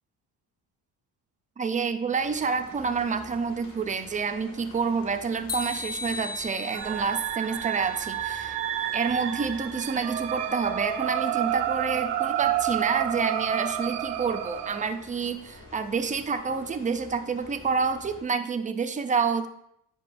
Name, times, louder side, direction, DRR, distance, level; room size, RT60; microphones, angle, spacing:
voice 1, 1.6-8.6 8.9-19.5, right 5 dB, 20° right, 7 dB, 0.4 m, -28 dB
sound 1, 2.1-18.2, left 2 dB, 45° left, 1.7 m, -48 dB
sound 2, 5.5-8.6, left 2 dB, 20° left, 0.7 m, -37 dB
sound 3, 6.7-14.9, right 12 dB, 85° right, 0.6 m, -30 dB
8.5 x 5.2 x 2.5 m, 0.74 s
cardioid pair, 130°, 40 cm